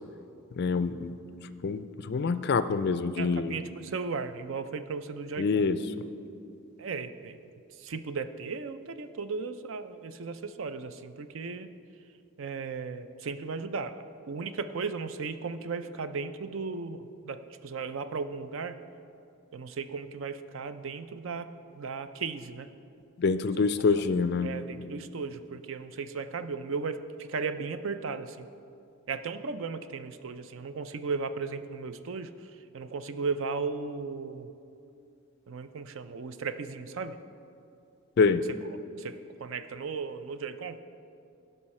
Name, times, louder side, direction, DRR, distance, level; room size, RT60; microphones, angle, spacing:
voice 1, 0.6-1.1 1.6-3.6 5.4-5.8 23.2-24.6 38.2-38.4, left 4 dB, 50° left, 12 dB, 0.3 m, -26 dB
voice 2, 3.2-5.6 6.8-7.4 7.8-11.7 12.4-13.9 14.3-18.8 19.5-21.5 21.7-22.7 24.4-28.5 29.1-32.3 32.7-34.5 35.5-37.2 39.0-40.8, right 4 dB, 65° right, 11 dB, 0.4 m, -36 dB
16.0 x 5.5 x 4.2 m, 2.6 s
head